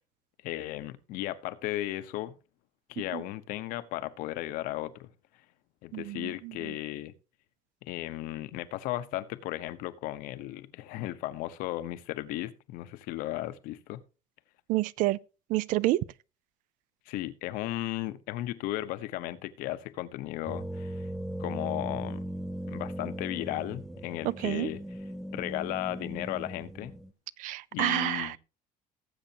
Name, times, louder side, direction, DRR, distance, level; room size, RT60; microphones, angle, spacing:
voice 1, 0.4-2.3 2.9-5.1 5.8-7.1 7.8-14.0 17.1-21.1 21.4-22.2 22.7-24.8 25.3-26.9 27.7-28.4, left 15 dB, 70° left, 1.0 m, -35 dB
voice 2, 5.9-6.7 14.7-15.2 15.5-16.0 24.2-24.7 27.4-28.4, right 17 dB, 65° right, 0.5 m, -29 dB
sound 1, 20.5-27.1, right 1 dB, ahead, 0.5 m, -38 dB
18.5 x 8.1 x 2.9 m
cardioid pair, 165°, 15 cm